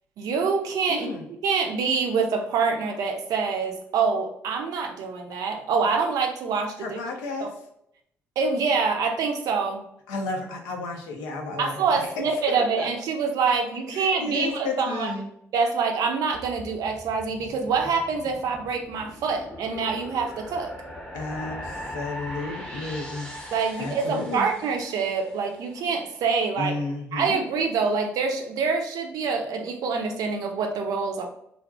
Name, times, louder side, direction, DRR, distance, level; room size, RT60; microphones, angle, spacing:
voice 1, 0.2-1.1 1.4-7.0 7.4-7.5 8.4-9.8 11.6-15.1 15.5-20.7 23.5-26.7 27.1-31.2, right 5 dB, 65° right, 4 dB, 0.4 m, -26 dB
voice 2, 0.9-1.2 6.8-7.5 10.1-12.9 13.9-15.3 21.1-23.3 23.8-24.5 26.6-27.4, left 3 dB, 75° left, 2 dB, 0.4 m, -32 dB
sound 1, 16.3-25.7, equal, 10° left, 0.7 m, -40 dB
2.5 x 2.1 x 2.5 m, 0.74 s
hypercardioid pair, 40°, 7 cm